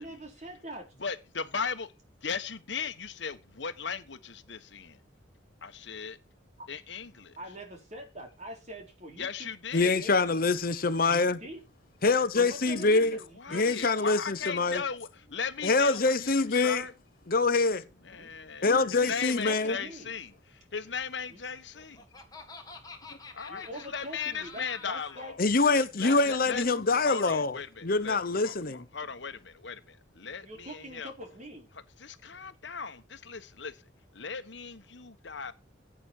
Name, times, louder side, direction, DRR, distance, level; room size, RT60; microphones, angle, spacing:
voice 1, 0.0-0.9 6.6-6.7 7.4-9.5 9.9-10.3 11.2-11.6 12.3-13.9 14.4-14.5 18.2-18.3 18.6-20.1 21.3-21.4 23.5-25.4 26.0-27.3 30.2-31.7, right 1 dB, 40° right, 3.9 m, -44 dB
voice 2, 1.0-1.9 2.2-5.0 5.6-6.2 6.7-7.4 9.2-10.0 12.6-16.9 18.0-22.0 23.3-25.4 26.0-26.6 27.0-31.1 32.0-33.8 34.1-35.5, left 6 dB, 65° left, 1.3 m, -37 dB
voice 3, 9.7-11.4 12.0-13.2 13.5-14.8 15.6-16.9 17.3-17.8 18.6-19.8 25.4-28.8, left 3 dB, 50° left, 0.9 m, -25 dB
Laughter, 21.5-25.3, left 4 dB, 20° left, 2.0 m, -48 dB
16.5 x 8.8 x 4.4 m
head